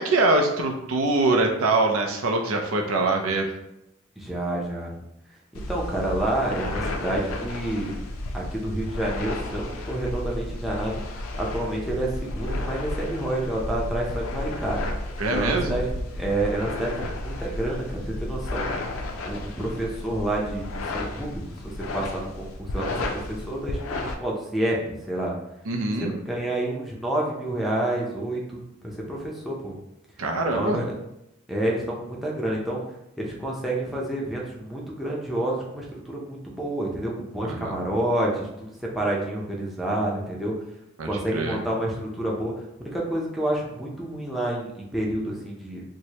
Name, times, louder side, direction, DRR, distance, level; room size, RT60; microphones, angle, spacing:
voice 1, 0.0-3.5 15.2-15.8 25.7-26.1 30.2-30.8 37.4-37.9 41.0-41.6, right 2 dB, 85° right, 3 dB, 0.5 m, -24 dB
voice 2, 4.2-5.0 5.7-7.9 8.3-11.0 11.4-14.8 15.3-15.9 16.1-18.7 19.2-25.3 26.0-29.8 30.5-30.9 31.5-32.8 33.2-40.5 41.0-42.5 42.8-45.8, right 1 dB, ahead, -4 dB, 0.5 m, -29 dB
sound 1, 5.5-24.1, left 1 dB, 80° left, 0.5 m, -32 dB
4.5 x 2.1 x 2.8 m, 0.83 s
head